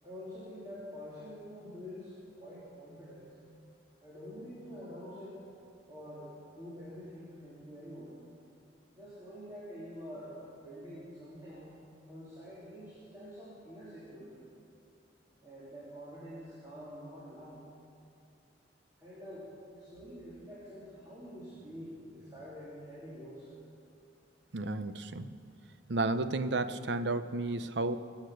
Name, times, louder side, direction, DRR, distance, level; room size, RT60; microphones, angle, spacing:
voice 1, 0.0-3.3 4.0-8.2 8.9-11.7 12.1-14.5 15.4-17.6 19.0-23.7, equal, 20° right, -8 dB, 3.1 m, -47 dB
voice 2, 24.5-25.3 25.9-28.0, right 2 dB, 70° right, 11 dB, 0.7 m, -32 dB
24.0 x 8.2 x 6.5 m, 2.4 s
head